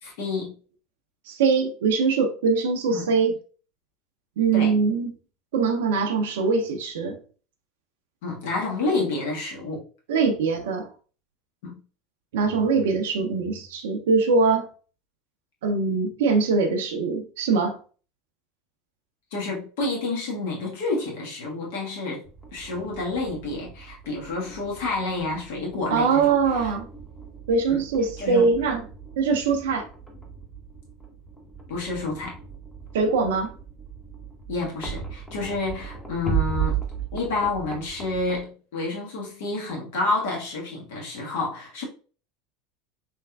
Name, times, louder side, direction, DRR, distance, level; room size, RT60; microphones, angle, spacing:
voice 1, 0.0-0.5 2.9-3.1 4.5-4.7 8.2-9.8 11.6-11.8 19.3-22.2 22.5-26.7 27.7-27.8 28.2-28.5 31.7-32.4 34.5-36.8 37.1-41.8, left 3 dB, 70° left, 1.3 m, -29 dB
voice 2, 1.3-3.4 4.4-5.1 5.5-7.2 10.1-10.9 12.3-14.7 15.6-17.8 25.9-26.9 27.5-28.8 29.2-29.9 32.9-33.5, right 4 dB, 75° right, 0.5 m, -22 dB
sound 1, 22.2-38.4, right 7 dB, 10° left, 0.9 m, -36 dB
3.3 x 3.1 x 2.2 m
hypercardioid pair, 80°, 0 cm